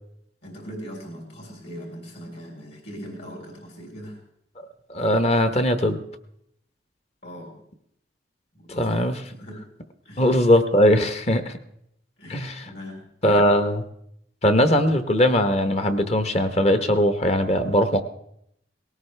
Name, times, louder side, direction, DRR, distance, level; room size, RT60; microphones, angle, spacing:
voice 1, 0.4-4.2 7.2-7.5 8.5-9.0 9.3-9.6 10.0-10.3 12.2-13.1, equal, 60° left, 0 dB, 3.8 m, -40 dB
voice 2, 4.9-6.0 8.8-9.1 10.2-11.6 12.3-12.5 13.2-13.8 14.4-18.0, equal, 35° left, 9 dB, 0.9 m, -20 dB
19.0 x 18.0 x 3.3 m, 0.73 s
head